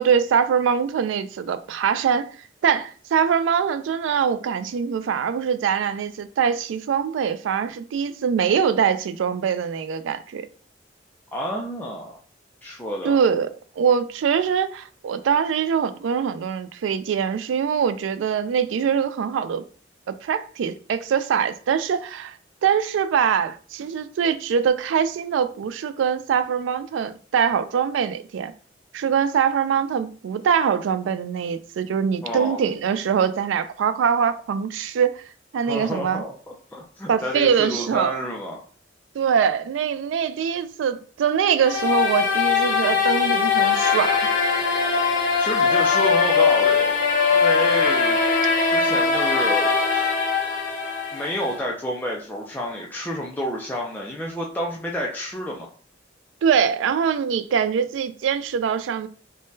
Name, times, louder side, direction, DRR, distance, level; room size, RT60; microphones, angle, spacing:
voice 1, 0.0-2.3 2.6-10.5 13.0-19.6 20.1-22.4 22.6-28.5 28.9-35.2 35.5-36.2 37.1-38.2 39.1-44.3 56.4-59.1, right 7 dB, 85° right, 0.3 m, -23 dB
voice 2, 11.3-12.2 12.6-13.2 32.2-32.6 35.6-38.6 45.4-47.0 47.3-48.2 48.7-50.2 51.1-55.7, equal, 10° left, 0.4 m, -29 dB
sound 1, 41.6-51.6, left 5 dB, 45° left, 0.7 m, -21 dB
3.5 x 2.2 x 2.6 m
head